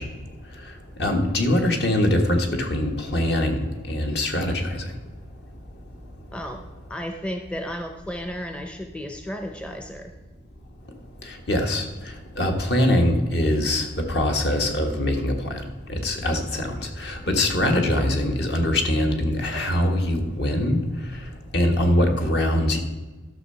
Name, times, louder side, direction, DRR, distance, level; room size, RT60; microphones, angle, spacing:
voice 1, 0.0-6.3 10.8-22.8, left 1 dB, 55° left, 3 dB, 1.5 m, -24 dB
voice 2, 6.3-6.6 6.9-10.1, equal, 5° left, 5 dB, 0.6 m, -33 dB
12.5 x 6.4 x 5.6 m, 1.2 s
head